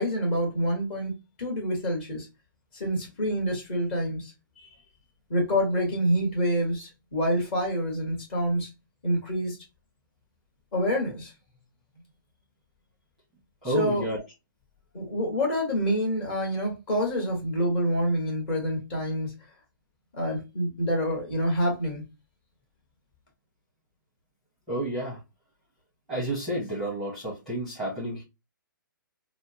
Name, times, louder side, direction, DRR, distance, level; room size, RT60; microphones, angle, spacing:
voice 1, 0.0-2.3 2.7-4.7 5.3-8.7 9.0-9.6 10.7-11.3 13.6-14.0 14.9-19.3 20.1-22.0, equal, 30° left, 1.5 m, -27 dB
voice 2, 13.6-14.2 24.7-25.2 26.1-28.2, right 1 dB, ahead, 0.9 m, -30 dB
4.4 x 2.1 x 2.8 m
hypercardioid pair, 170°, 11 cm